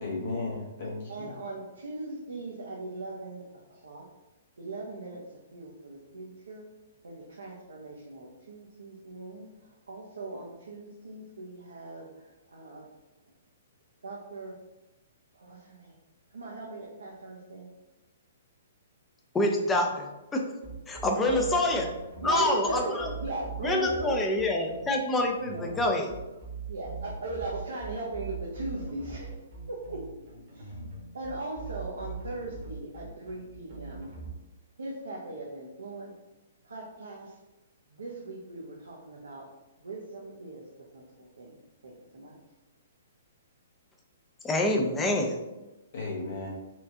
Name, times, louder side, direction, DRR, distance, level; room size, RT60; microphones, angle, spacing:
voice 1, 0.0-1.3 45.9-46.5, left 3 dB, 60° left, -4 dB, 1.2 m, -34 dB
voice 2, 1.1-4.0 4.6-6.6 7.0-12.8 14.0-14.6 15.3-15.9 16.3-17.7 20.9-21.6 22.2-24.3 25.4-26.0 26.7-30.2 30.5-30.8 31.1-34.1 34.8-36.1 36.6-37.4 37.9-39.5 39.8-40.6 40.9-41.6 41.8-42.4, right 2 dB, 80° right, -3 dB, 0.7 m, -39 dB
voice 3, 19.3-20.4 20.9-21.9 22.2-23.1 23.6-26.1 44.4-45.4, left 1 dB, 15° left, 2 dB, 0.5 m, -26 dB
sound 1, 20.6-34.3, right 5 dB, 55° right, 1.1 m, -41 dB
4.4 x 2.4 x 2.7 m, 1.0 s
figure-of-eight pair, 120°, 0 cm